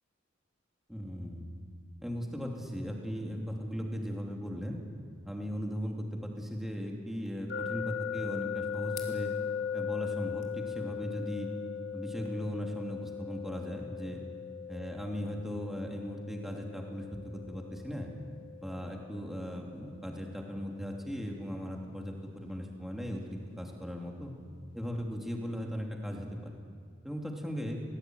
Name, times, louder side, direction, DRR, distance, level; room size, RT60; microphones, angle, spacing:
voice 1, 0.9-1.5 2.0-4.8 5.2-9.3 9.7-11.5 11.9-14.2 14.7-17.0 17.3-18.1 18.6-24.3 24.7-26.6 27.0-27.8, equal, ahead, 0 dB, 2.9 m, -38 dB
sound 1, 7.2-12.3, left 7 dB, 35° left, 2.9 m, -56 dB
sound 2, 7.5-20.4, left 8 dB, 65° left, 2.2 m, -39 dB
19.5 x 19.5 x 9.5 m, 2.2 s
head